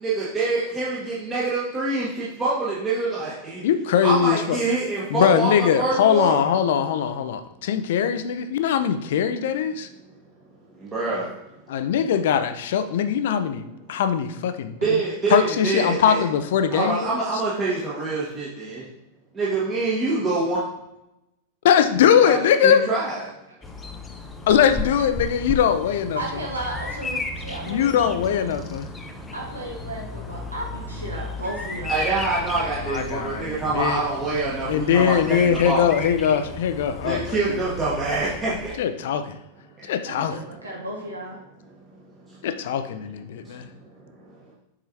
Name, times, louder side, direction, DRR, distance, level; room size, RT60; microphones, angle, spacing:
voice 1, 0.0-3.6 4.0-6.4 10.9-11.3 14.8-16.2 16.7-18.8 19.4-20.6 21.9-23.3 31.9-35.9 37.0-38.5, right 3 dB, 20° right, -7 dB, 1.5 m, -25 dB
voice 2, 3.6-4.6 5.1-9.9 11.7-15.0 15.3-17.1 21.6-22.9 24.5-26.2 27.7-28.9 32.6-34.0 34.7-37.2 37.5-37.6 38.8-39.4 39.9-40.3 42.4-43.7, left 8 dB, 55° left, 10 dB, 0.5 m, -21 dB
Bird vocalization bird call bird song, 23.6-38.8, left 2 dB, 15° left, 0.7 m, -34 dB
voice 3, 26.2-28.6 29.3-32.1 40.0-41.4, right 1 dB, 80° right, -2 dB, 1.6 m, -34 dB
7.3 x 4.9 x 2.9 m, 0.88 s
figure-of-eight pair, 90°, 0 cm